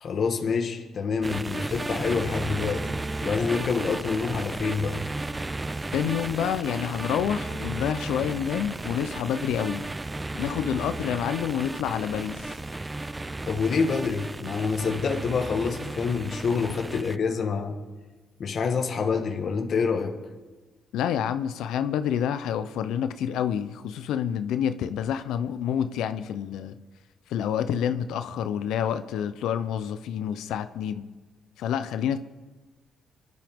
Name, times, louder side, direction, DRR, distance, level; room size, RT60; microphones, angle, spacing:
voice 1, 0.0-2.9 3.2-5.0 13.5-17.8 18.4-20.2, left 5 dB, 55° left, 1.4 m, -27 dB
sound 1, 1.2-17.2, right 2 dB, 15° right, 0.4 m, -34 dB
voice 2, 5.9-9.8 10.4-12.5 20.9-26.8 27.3-31.0 31.6-32.2, left 9 dB, 85° left, 0.6 m, -28 dB
24.5 x 10.5 x 3.6 m
cardioid pair, 90°, 0 cm